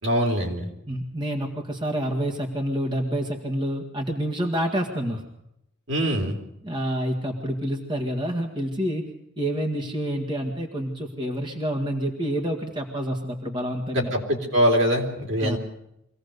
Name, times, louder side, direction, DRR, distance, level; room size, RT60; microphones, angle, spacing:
voice 1, 0.0-0.7 5.9-6.4 13.9-15.6, equal, 65° right, 2 dB, 3.4 m, -23 dB
voice 2, 0.9-5.2 6.6-9.1 9.4-14.1 15.4-15.6, equal, 20° right, 2 dB, 1.8 m, -28 dB
24.0 x 17.0 x 6.7 m, 0.81 s
head